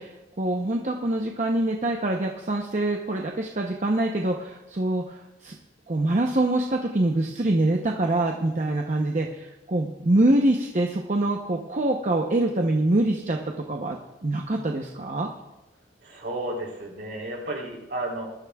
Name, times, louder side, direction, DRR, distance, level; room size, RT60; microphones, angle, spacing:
voice 1, 0.0-5.6 5.9-13.4 13.7-14.0 14.2-15.3, right 1 dB, 40° right, 2 dB, 0.7 m, -25 dB
voice 2, 16.0-18.2, right 1 dB, 65° right, -2 dB, 3.5 m, -32 dB
20.5 x 13.0 x 2.3 m, 1.0 s
head